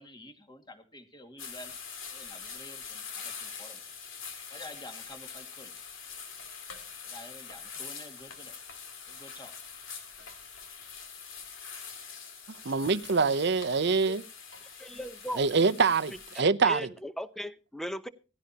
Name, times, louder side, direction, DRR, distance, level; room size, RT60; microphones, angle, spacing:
voice 1, 0.0-1.8 2.1-3.8 4.5-5.8 7.0-8.6 9.1-9.6, left 1 dB, 25° left, 2.1 m, -49 dB
sound 1, 1.4-16.4, left 6 dB, 80° left, 2.6 m, -44 dB
voice 2, 12.6-14.2 15.4-16.9, right 4 dB, 60° right, 0.7 m, -25 dB
voice 3, 14.8-15.4 16.3-18.1, equal, ahead, 0.8 m, -38 dB
17.0 x 16.0 x 2.9 m
head